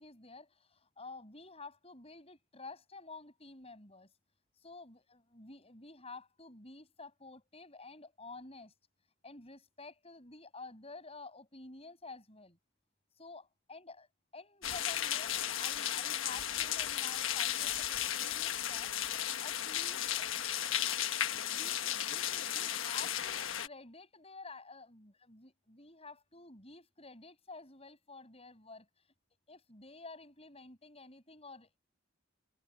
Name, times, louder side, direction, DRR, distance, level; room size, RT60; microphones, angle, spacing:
voice 1, 0.0-4.1 4.6-8.7 9.2-12.6 13.2-13.4 13.7-14.1 14.3-20.3 21.4-28.9 29.5-31.8, left 3 dB, 30° left, 7.6 m, -51 dB
sound 1, 14.6-23.7, left 11 dB, 75° left, 1.3 m, -35 dB
head